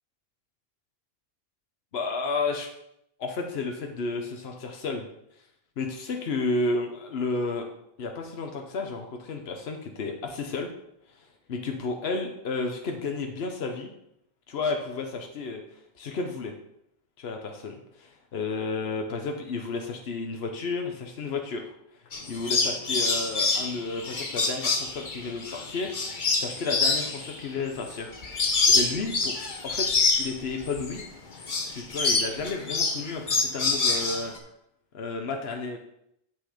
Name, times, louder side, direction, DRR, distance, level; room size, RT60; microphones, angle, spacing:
voice 1, 1.9-2.7 3.2-5.0 5.8-7.7 8.0-10.7 11.1-13.9 14.5-15.6 16.0-16.5 17.2-21.7 22.3-29.3 29.6-29.9 30.2-31.0 31.6-34.3 34.9-35.8, left 3 dB, 80° left, 3 dB, 1.2 m, -32 dB
sound 1, 22.1-31.1 31.4-34.4, left 3 dB, 50° left, 1.2 m, -26 dB
7.6 x 6.4 x 5.0 m, 0.78 s
omnidirectional pair, 1.0 m